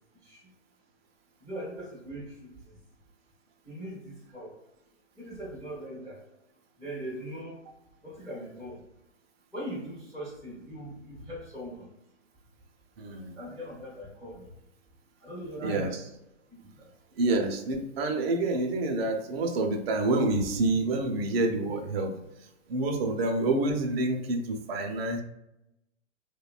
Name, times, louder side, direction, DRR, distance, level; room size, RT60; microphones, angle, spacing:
voice 1, 1.4-2.5 3.6-4.5 5.2-6.2 6.8-7.5 8.0-8.8 9.5-11.9 13.4-14.5 15.2-15.9 16.5-16.9, equal, 5° left, -8 dB, 0.6 m, -40 dB
voice 2, 13.0-13.3 15.6-16.0 17.2-22.2 22.7-25.2, right 2 dB, 50° right, 4 dB, 0.6 m, -28 dB
2.7 x 2.2 x 2.3 m, 0.88 s
hypercardioid pair, 135°, 38 cm